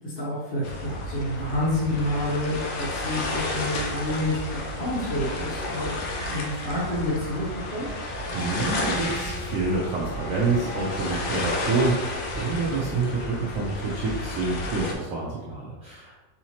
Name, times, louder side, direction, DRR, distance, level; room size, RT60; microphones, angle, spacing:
voice 1, 0.0-4.4 4.7-5.9 6.3-7.5 7.7-7.9, left 1 dB, 45° left, -8 dB, 0.8 m, -28 dB
sound 1, 0.6-14.9, left 2 dB, 80° left, 1.3 m, -32 dB
Bowed string instrument, 8.3-13.1, right 2 dB, 60° left, 1.3 m, -39 dB
voice 2, 8.3-16.1, right 3 dB, 90° right, -4 dB, 0.7 m, -27 dB
4.7 x 2.8 x 2.9 m, 1.2 s
omnidirectional pair, 2.1 m